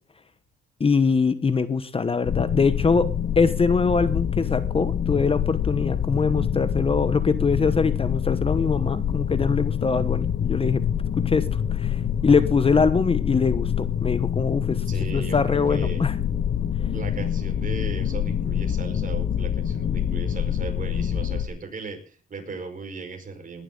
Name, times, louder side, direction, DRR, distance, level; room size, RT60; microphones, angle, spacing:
voice 1, 0.8-3.1 3.4-10.8 11.2-11.5 11.7-14.8 15.1-16.1, left 4 dB, 30° left, 13 dB, 1.0 m, -23 dB
sound 1, 2.2-21.5, left 9 dB, 45° left, 1.0 m, -26 dB
voice 2, 14.9-16.1 16.9-23.6, right 4 dB, 40° right, 5 dB, 4.9 m, -37 dB
20.0 x 11.0 x 3.9 m, 0.38 s
cardioid pair, 90°, 20 cm